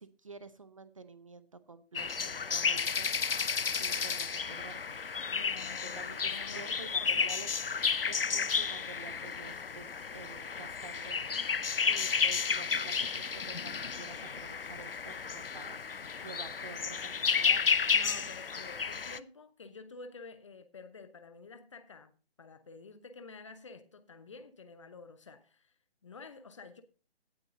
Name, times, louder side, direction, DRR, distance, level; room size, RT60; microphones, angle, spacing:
voice 1, 0.0-5.1 5.8-7.6 8.0-17.9, right 4 dB, 30° right, 0.7 m, -50 dB
sound 1, 2.0-19.2, left 5 dB, 60° left, 0.7 m, -32 dB
voice 2, 5.3-7.4 8.3-8.4 9.1-9.6 17.9-25.7 26.0-26.8, left 4 dB, 30° left, 0.9 m, -50 dB
17.0 x 8.6 x 2.6 m
figure-of-eight pair, 145°, 32 cm